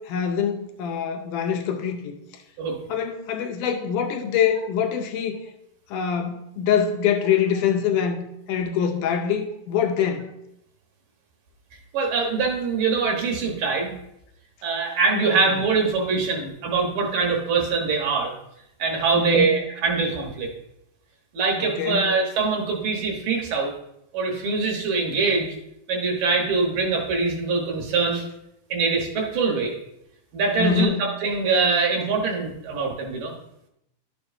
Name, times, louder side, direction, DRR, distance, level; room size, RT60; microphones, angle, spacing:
voice 1, 0.0-2.2 2.9-5.4 5.9-8.2 8.5-10.3 15.4-15.5 19.1-19.6 21.6-22.1 30.6-31.0, left 8 dB, 75° left, 4 dB, 2.0 m, -24 dB
voice 2, 11.9-13.9 14.6-18.3 18.8-20.5 21.3-23.7 24.1-25.5 25.9-28.2 28.7-29.8 30.3-33.3, right 4 dB, 70° right, 1 dB, 2.6 m, -23 dB
11.5 x 7.0 x 2.6 m, 0.80 s
omnidirectional pair, 4.2 m